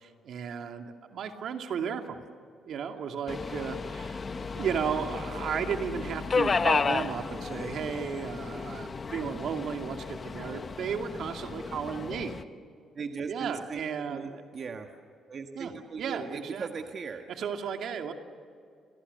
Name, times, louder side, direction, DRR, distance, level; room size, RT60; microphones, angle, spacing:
voice 1, 0.0-2.2 2.6-12.4 13.3-14.4 15.6-15.7 16.0-16.7 17.4-18.1, right 7 dB, 70° right, 5 dB, 2.4 m, -34 dB
Subway metro underground, 3.3-12.4, left 4 dB, 35° left, 1.1 m, -33 dB
voice 2, 12.9-14.9 15.3-17.2, right 5 dB, 50° right, 4 dB, 1.7 m, -38 dB
29.0 x 22.0 x 6.8 m, 2.4 s
cardioid pair, 90°, 0 cm